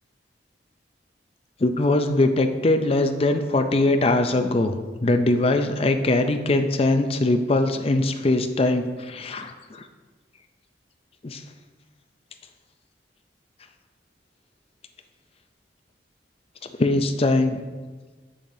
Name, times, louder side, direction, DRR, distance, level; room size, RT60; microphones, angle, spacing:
voice 1, 1.6-9.9 11.2-11.4 16.8-17.6, left 2 dB, 35° left, 7 dB, 0.5 m, -21 dB
7.8 x 6.9 x 2.7 m, 1.3 s
head